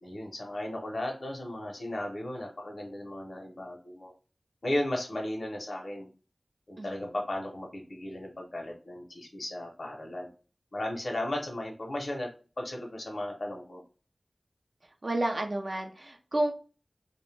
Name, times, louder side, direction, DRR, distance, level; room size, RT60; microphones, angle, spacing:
voice 1, 0.0-4.1 4.6-6.1 6.7-10.3 10.7-12.3 12.6-13.8, left 1 dB, 70° left, 0 dB, 0.6 m, -35 dB
voice 2, 15.0-16.5, right 1 dB, 55° right, 3 dB, 0.3 m, -30 dB
2.5 x 2.1 x 3.1 m, 0.37 s
wide cardioid pair, 70°, 0 cm